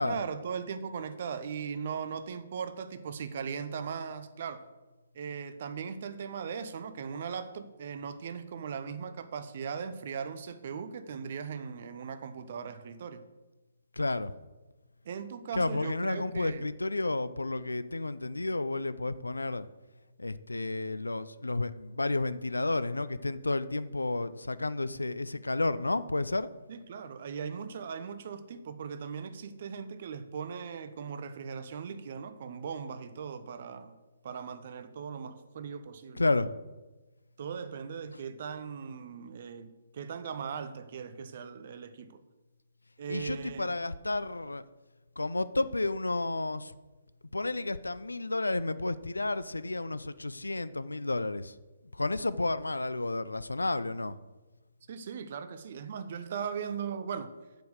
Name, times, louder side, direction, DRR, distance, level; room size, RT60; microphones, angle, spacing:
voice 1, 0.0-4.7 5.1-13.2 15.0-16.6 26.7-34.0 34.2-36.2 37.4-42.2 43.0-43.7 54.9-57.3, right 6 dB, 40° right, 11 dB, 0.8 m, -39 dB
voice 2, 14.0-14.3 15.5-19.7 20.2-26.5 36.1-36.5 43.1-44.6 45.2-46.7 47.3-51.5 51.9-54.1, left 2 dB, 75° left, 15 dB, 0.5 m, -31 dB
7.8 x 7.0 x 6.5 m, 1.2 s
figure-of-eight pair, 135°, 0 cm